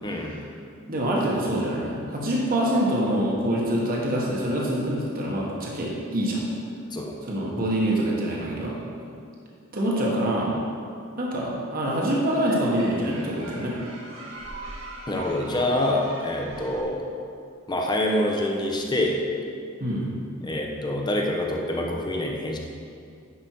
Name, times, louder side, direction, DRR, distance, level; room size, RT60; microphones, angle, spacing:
voice 1, 0.0-0.4 6.9-7.1 15.1-17.1 17.7-19.2 20.4-22.6, left 1 dB, 20° left, 0 dB, 0.8 m, -26 dB
voice 2, 0.9-6.4 7.2-8.8 9.7-10.5 11.2-13.7 19.8-20.2, right 1 dB, 45° right, -3 dB, 1.3 m, -25 dB
sound 1, 11.8-16.8, right 2 dB, 70° right, 1.5 m, -40 dB
10.5 x 5.3 x 4.5 m, 2.3 s
head